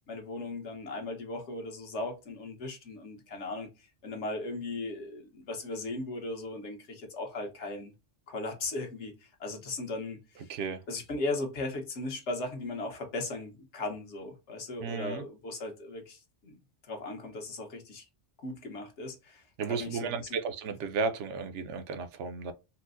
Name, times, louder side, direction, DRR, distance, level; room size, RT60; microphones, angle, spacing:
voice 1, 0.1-7.9 8.3-10.5 10.9-16.6 16.9-18.1 18.4-19.4 19.7-20.3, left 2 dB, 70° left, 1.2 m, -37 dB
voice 2, 10.5-10.8 14.8-15.2 19.6-22.5, right 5 dB, 75° right, 0.9 m, -34 dB
4.3 x 2.0 x 2.4 m
omnidirectional pair, 1.2 m